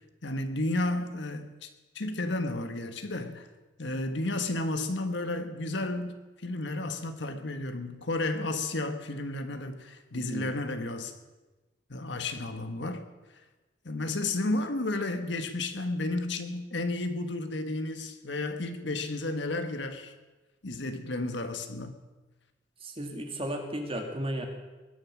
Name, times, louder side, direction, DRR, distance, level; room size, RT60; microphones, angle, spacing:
voice 1, 0.2-1.7 1.9-3.5 3.8-11.1 11.9-13.0 13.8-20.1 20.6-21.9, left 2 dB, 65° left, 1.4 m, -32 dB
voice 2, 10.1-10.5 22.8-24.5, right 1 dB, 30° right, 2.3 m, -34 dB
20.5 x 10.5 x 6.2 m
head